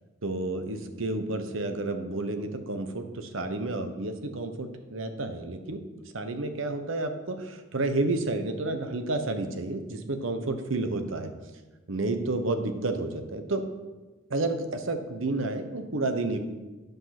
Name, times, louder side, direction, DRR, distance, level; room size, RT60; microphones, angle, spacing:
voice 1, 0.2-5.8 6.1-11.3 11.9-13.6 14.3-16.4, right 2 dB, 85° right, 7 dB, 1.0 m, -30 dB
10.5 x 5.3 x 5.9 m, 1.2 s
head